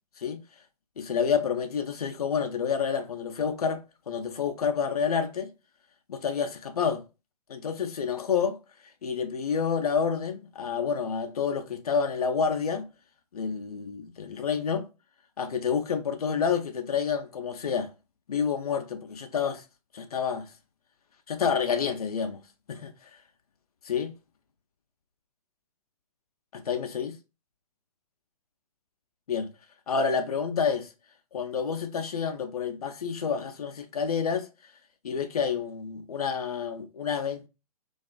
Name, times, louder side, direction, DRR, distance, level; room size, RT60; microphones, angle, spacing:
voice 1, 1.0-5.5 6.1-7.0 7.5-8.6 8.8-12.9 13.3-14.9 15.4-17.9 18.3-19.7 19.9-20.5 21.3-22.4 22.7-23.2 23.8-24.1 26.5-27.2 29.3-29.5 29.9-30.9 31.3-34.7 35.0-37.5, left 6 dB, 75° left, 0.4 m, -29 dB
2.3 x 2.3 x 2.3 m
figure-of-eight pair, 115°, 19 cm